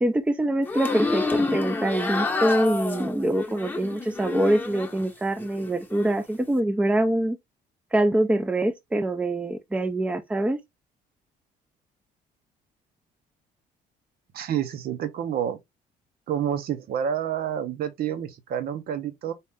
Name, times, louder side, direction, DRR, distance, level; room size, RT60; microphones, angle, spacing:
voice 1, 0.0-7.4 7.9-10.6, right 1 dB, 5° right, 0.5 m, -24 dB
sound 1, 0.6-5.1 5.4-6.1, left 3 dB, 10° left, 0.9 m, -29 dB
voice 2, 14.3-15.6 16.3-19.3, right 9 dB, 65° right, 0.8 m, -28 dB
4.3 x 2.5 x 3.5 m
cardioid pair, 110°, 17 cm